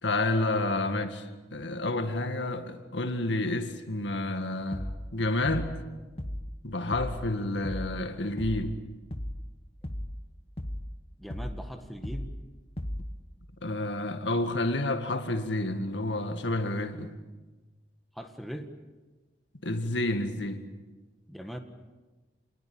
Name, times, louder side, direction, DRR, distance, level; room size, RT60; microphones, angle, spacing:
voice 1, 0.0-5.8 6.6-8.8 13.6-17.1 19.6-20.7, left 2 dB, 80° left, 2.1 m, -30 dB
sound 1, 4.7-5.1 5.4-5.8 6.2-6.6 6.9-7.3 7.6-8.0 8.4-8.7 9.1-9.5 9.8-10.2 10.6-10.9 11.3-11.7 12.0-12.4 12.8-13.2, left 1 dB, 30° left, 1.2 m, -36 dB
voice 2, 11.2-12.3 18.1-18.7 21.3-21.6, equal, ahead, 1.7 m, -40 dB
27.5 x 20.5 x 8.9 m
head